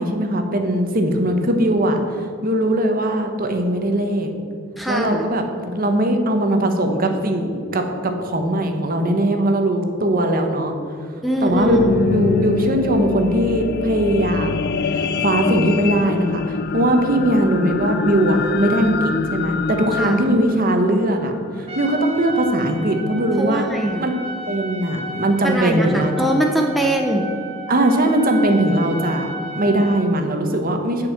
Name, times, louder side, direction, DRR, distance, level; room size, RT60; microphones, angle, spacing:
voice 1, 0.0-4.3 4.9-10.7 11.4-23.7 24.0-24.1 24.5-26.3 27.7-31.1, right 1 dB, 45° right, 5 dB, 1.0 m, -20 dB
voice 2, 4.8-5.3 11.2-11.8 20.0-20.2 23.4-24.1 25.4-27.3, equal, ahead, 1 dB, 0.6 m, -22 dB
sound 1, 11.3-21.8 22.4-22.5, left 5 dB, 50° left, 0.4 m, -25 dB
Trumpet, 21.7-30.1, right 1 dB, 30° right, 1.8 m, -33 dB
8.0 x 5.5 x 7.6 m, 2.3 s
head